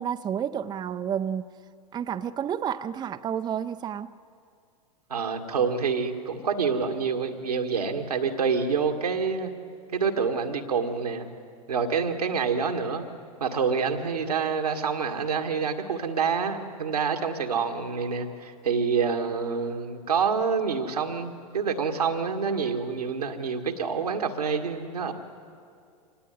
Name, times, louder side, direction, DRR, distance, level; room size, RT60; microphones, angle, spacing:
voice 1, 0.0-1.4 1.9-4.1, right 9 dB, 20° right, 10 dB, 0.6 m, -30 dB
voice 2, 5.1-9.5 9.9-11.3 11.7-13.1 13.4-25.1, right 5 dB, 90° right, 4 dB, 2.0 m, -27 dB
25.0 x 18.5 x 9.5 m, 2.4 s
hypercardioid pair, 100°, 19 cm